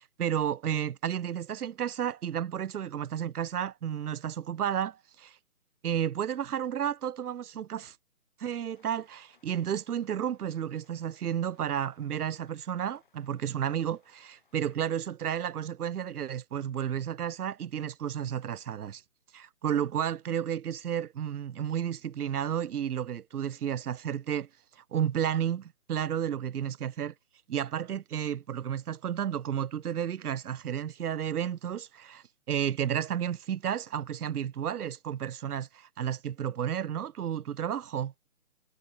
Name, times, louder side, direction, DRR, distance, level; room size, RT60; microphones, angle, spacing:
voice 1, 0.0-5.4 5.8-8.0 8.4-19.0 19.3-24.5 24.8-27.1 27.5-38.1, right 9 dB, 85° right, 0.6 m, -32 dB
Rain, 8.7-14.8, left 5 dB, 35° left, 6.9 m, -69 dB
hypercardioid pair, 180°, 44 cm